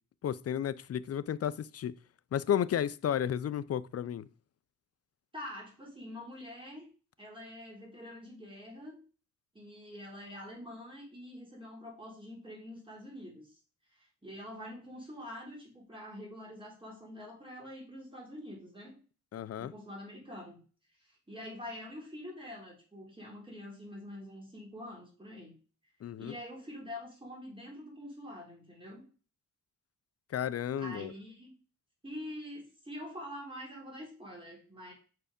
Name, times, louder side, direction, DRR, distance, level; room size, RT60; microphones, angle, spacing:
voice 1, 0.2-1.9 2.3-4.3 19.3-19.7 26.0-26.3 30.3-31.1, left 9 dB, 50° left, 0.5 m, -32 dB
voice 2, 5.3-6.9 7.2-9.0 9.5-13.6 13.9-18.9 19.6-20.6 21.0-25.6 26.2-29.1 30.8-31.6 32.0-34.9, left 1 dB, 15° right, 3.5 m, -45 dB
6.0 x 4.7 x 5.1 m
cardioid pair, 95°, 31 cm